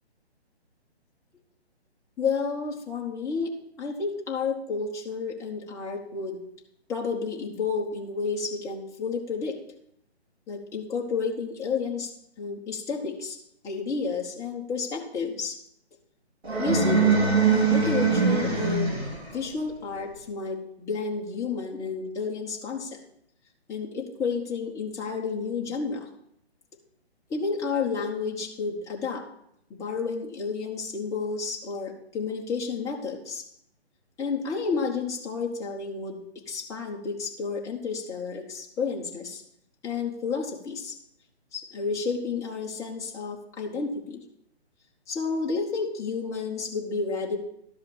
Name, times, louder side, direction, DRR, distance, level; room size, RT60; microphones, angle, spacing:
voice 1, 2.2-3.5 3.8-6.4 6.9-9.6 10.5-12.1 12.4-13.4 13.6-15.6 16.6-17.0 17.4-19.0 19.3-23.0 23.7-26.1 27.3-29.2 29.7-33.5 34.2-39.4 39.8-41.0 41.5-44.2 45.1-47.4, left 5 dB, 10° left, -3 dB, 1.1 m, -31 dB
sound 1, 16.4-19.3, right 5 dB, 65° right, 3.8 m, -22 dB
12.0 x 5.5 x 7.0 m, 0.73 s
figure-of-eight pair, 145°, 34 cm